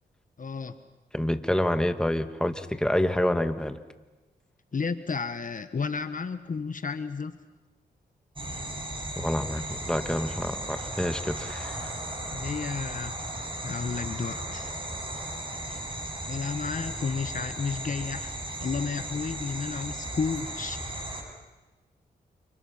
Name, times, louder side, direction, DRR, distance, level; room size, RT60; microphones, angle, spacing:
voice 1, 0.4-0.8 4.7-7.4 12.3-13.1 13.6-14.7 16.3-20.8, left 5 dB, 50° left, 10 dB, 1.4 m, -32 dB
voice 2, 1.1-3.8 9.2-11.8, left 1 dB, 5° left, 7 dB, 1.8 m, -27 dB
sound 1, 8.4-21.2, right 1 dB, 30° right, 6.9 m, -36 dB
28.5 x 26.0 x 5.8 m, 1.2 s
cardioid pair, 50°, 18 cm